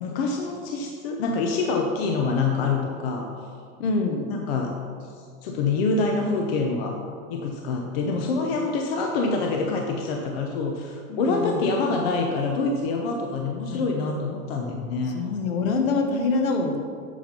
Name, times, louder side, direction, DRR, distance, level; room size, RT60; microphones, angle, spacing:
voice 1, 0.0-3.3 4.3-4.7 5.4-7.0 7.3-15.2, left 3 dB, 45° left, 2 dB, 0.8 m, -26 dB
voice 2, 3.8-4.4 11.1-11.7 13.7-13.9 15.0-16.8, left 3 dB, 65° left, 4 dB, 1.3 m, -25 dB
8.4 x 5.3 x 5.2 m, 2.1 s
supercardioid pair, 170°, 43 cm